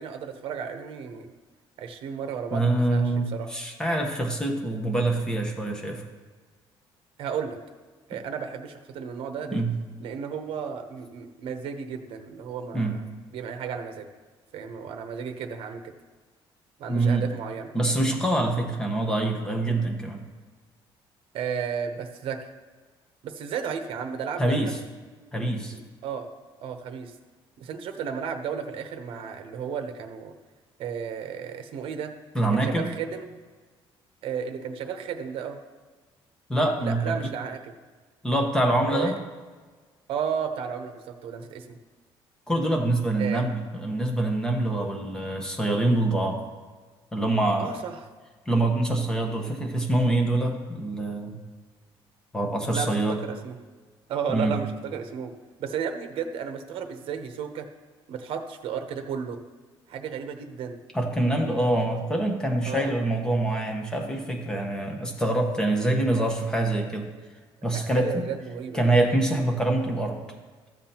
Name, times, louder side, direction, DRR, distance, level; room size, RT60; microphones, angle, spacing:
voice 1, 0.0-1.3 1.8-3.5 7.2-7.6 8.1-9.6 10.0-13.0 13.3-14.1 14.5-15.8 16.8-17.7 21.3-22.4 23.2-24.7 25.7-26.3 26.6-27.1 27.6-30.3 30.8-33.2 34.2-35.6 36.8-37.7 38.9-39.1 40.1-41.8 43.2-43.4 47.6-48.0 52.7-53.6 54.1-55.3 55.6-57.7 58.1-59.4 59.9-60.8 62.6-62.9 67.9-68.8, right 7 dB, 65° right, 7 dB, 0.9 m, -33 dB
voice 2, 2.5-6.0 9.5-9.7 12.7-13.0 16.9-17.3 17.7-20.2 24.4-24.8 25.3-25.8 32.3-32.9 36.5-37.3 38.2-39.1 42.5-46.4 47.1-47.7 48.5-51.4 52.3-53.2 54.3-54.5 60.9-67.1 67.6-68.2 68.7-70.2, right 2 dB, 5° left, 2 dB, 1.1 m, -25 dB
13.5 x 7.4 x 2.9 m, 1.4 s
cardioid pair, 150°, 10 cm